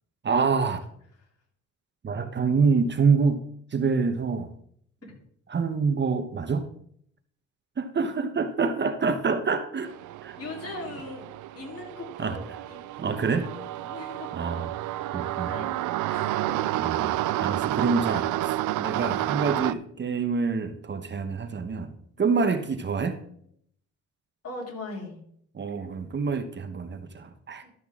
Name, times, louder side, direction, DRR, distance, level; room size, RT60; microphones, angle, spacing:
voice 1, 0.2-0.8 2.0-3.4 3.7-4.5 5.5-6.7 7.8-9.9 10.2-10.4 10.6-10.7 12.2-12.4 13.0-13.5 14.3-14.7 15.1-15.6 16.8-17.1 17.4-18.3 18.8-23.2 25.5-27.6, right 5 dB, 35° right, 8 dB, 1.0 m, -26 dB
sound 1, 9.8-19.7, right 14 dB, 80° right, 0.5 m, -30 dB
voice 2, 10.4-11.3 11.5-12.8 13.2-14.3 15.0-16.6 17.3-17.6 22.2-22.4 24.4-25.2 27.6-27.7, left 2 dB, 50° left, 0 dB, 3.7 m, -41 dB
12.5 x 7.9 x 3.7 m, 0.66 s
cardioid pair, 90°, 30 cm